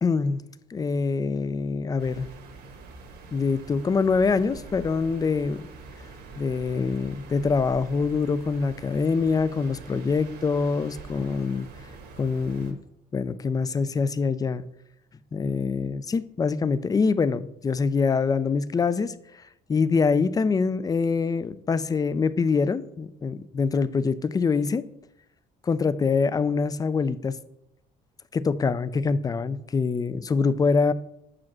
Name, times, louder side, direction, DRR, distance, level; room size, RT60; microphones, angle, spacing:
voice 1, 0.0-0.4 0.7-2.3 3.3-5.7 6.4-11.7 12.2-12.8 13.1-14.6 15.3-19.4 19.7-24.8 25.6-27.4 28.3-30.9, left 4 dB, 20° left, 16 dB, 0.4 m, -24 dB
sound 1, 2.0-12.7, right 4 dB, 70° right, 1.4 m, -44 dB
6.1 x 4.9 x 6.0 m, 0.81 s
cardioid pair, 110°, 17 cm